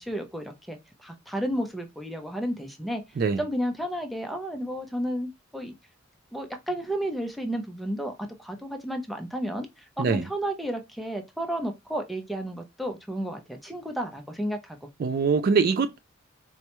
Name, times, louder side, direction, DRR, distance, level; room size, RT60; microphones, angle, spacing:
voice 1, 0.0-3.0 3.4-5.7 6.3-14.9, equal, ahead, 0.5 m, -32 dB
voice 2, 15.0-16.0, right 5 dB, 45° right, 0.3 m, -23 dB
4.2 x 2.3 x 2.9 m
head